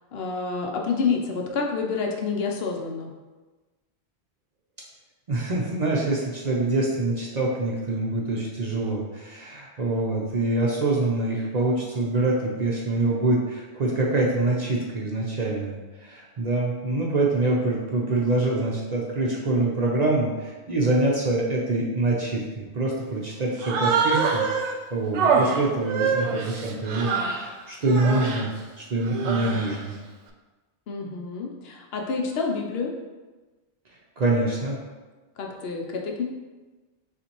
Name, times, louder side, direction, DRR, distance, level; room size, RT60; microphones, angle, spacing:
voice 1, 0.1-3.1 30.9-32.9 35.4-36.2, left 4 dB, 65° left, 1 dB, 0.8 m, -28 dB
voice 2, 5.3-28.5 28.8-30.0 34.2-34.8, right 2 dB, 50° right, -3 dB, 0.6 m, -25 dB
Human voice, 23.6-24.8 25.1-27.5 27.8-28.5 29.0-29.8, right 5 dB, 85° right, 0.9 m, -25 dB
6.6 x 2.5 x 3.0 m, 1.2 s
omnidirectional pair, 1.1 m